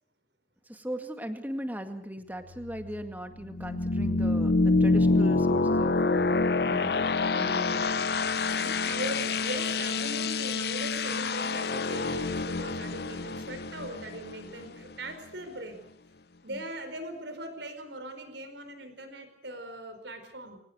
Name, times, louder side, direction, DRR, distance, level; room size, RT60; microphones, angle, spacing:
voice 1, 0.7-6.3 6.7-7.0 7.3-7.9 8.5-8.8 16.5-16.6, equal, 10° right, 7 dB, 2.0 m, -38 dB
sound 1, 2.5-15.1, left 3 dB, 60° left, 0.9 m, -27 dB
voice 2, 8.8-15.8 16.4-20.6, right 1 dB, 80° right, 8 dB, 4.6 m, -40 dB
24.0 x 18.0 x 8.0 m, 0.71 s
head